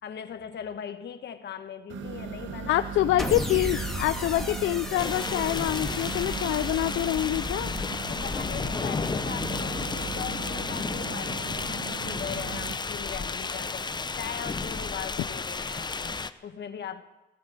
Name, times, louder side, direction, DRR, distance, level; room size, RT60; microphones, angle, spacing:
voice 1, 0.0-2.8 8.1-13.9 14.1-17.0, left 8 dB, 60° left, 1.2 m, -39 dB
sound 1, 1.9-12.7, right 6 dB, 75° right, 1.3 m, -38 dB
voice 2, 2.7-7.7, left 14 dB, 80° left, 0.5 m, -26 dB
sound 2, 3.2-9.5, left 1 dB, ahead, 2.1 m, -37 dB
sound 3, 5.0-16.3, left 4 dB, 20° left, 0.7 m, -32 dB
16.5 x 11.5 x 7.7 m
cardioid pair, 90°, 20 cm